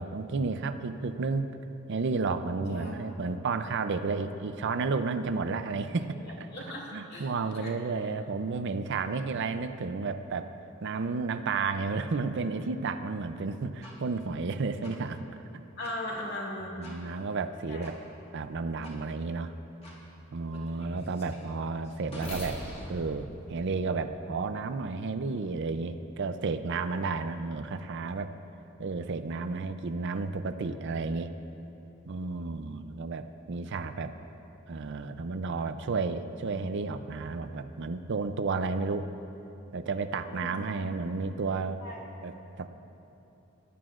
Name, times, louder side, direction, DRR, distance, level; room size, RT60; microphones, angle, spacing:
voice 1, 0.0-1.5 1.9-6.5 6.9-10.5 10.8-15.3 16.8-18.0 18.3-19.5 20.3-22.6 22.9-28.3 28.8-31.3 32.1-34.1 34.7-39.1 39.7-41.8 42.2-42.7, right 4 dB, 60° right, 9 dB, 0.5 m, -32 dB
voice 2, 6.5-7.3 7.6-7.7 15.8-16.7 17.7-17.9 40.2-40.6 41.8-42.1, left 1 dB, 55° left, -3 dB, 2.3 m, -38 dB
sound 1, 13.8-13.9 14.8-14.9 15.8-15.9 16.8-17.0 17.8-17.9 18.8-18.9 19.8-20.0 20.5-24.4, equal, 30° left, 2.1 m, -44 dB
20.5 x 11.0 x 2.5 m, 2.9 s
head